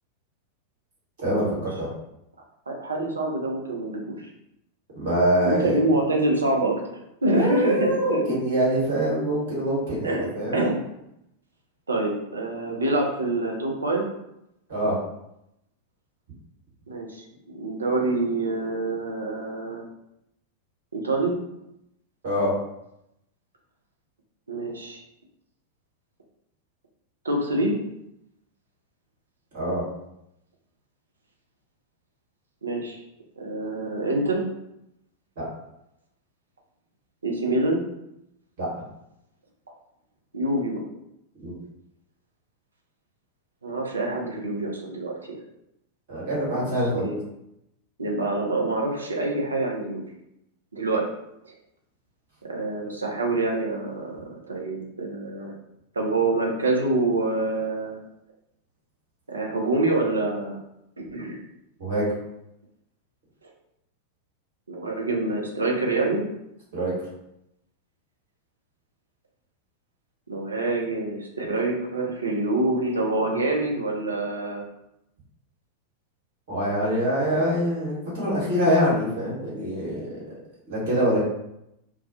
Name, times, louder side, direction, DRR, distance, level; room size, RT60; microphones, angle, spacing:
voice 1, 1.2-1.9 4.9-5.8 7.3-10.6 14.7-14.9 22.2-22.5 29.5-29.8 35.4-35.5 38.6-38.7 41.4-41.6 46.1-47.1 61.8-62.1 66.7-66.9 76.5-80.0 80.7-81.2, equal, 55° right, -6 dB, 1.2 m, -24 dB
voice 2, 2.7-4.3 5.4-8.2 10.0-10.3 10.5-10.8 11.9-14.1 16.9-19.8 20.9-21.3 24.5-25.0 27.2-27.8 32.6-33.0 33.4-34.4 37.2-37.8 40.3-40.8 43.6-45.4 46.5-47.2 48.0-50.0 50.7-51.0 51.4-51.6 52.5-55.5 56.0-58.0 59.3-60.6 61.1-61.4 64.7-66.2 70.3-74.6, right 2 dB, 75° right, 0 dB, 0.5 m, -26 dB
2.3 x 2.1 x 2.6 m, 0.82 s
figure-of-eight pair, 90°, 0 cm